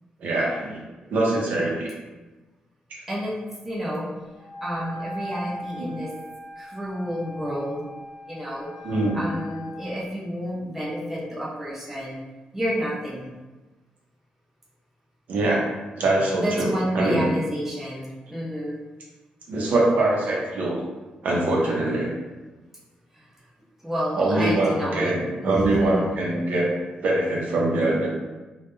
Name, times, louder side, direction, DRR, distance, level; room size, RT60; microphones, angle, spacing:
voice 1, 0.2-0.8 1.1-1.9 8.8-9.2 15.3-15.6 16.0-17.3 19.5-20.8 21.2-22.1 24.2-26.7 27.0-28.1, right 2 dB, 70° right, -3 dB, 0.6 m, -23 dB
voice 2, 3.6-4.1 4.6-6.1 6.6-7.9 8.3-8.7 9.1-12.2 12.5-13.3 16.3-18.8 23.1-23.3 23.8-25.1 25.4-26.0, equal, 10° right, -6 dB, 0.6 m, -30 dB
Wind instrument woodwind instrument, 4.4-9.7, equal, 40° left, 0.8 m, -39 dB
2.2 x 2.1 x 3.0 m, 1.2 s
cardioid pair, 120°, 3 cm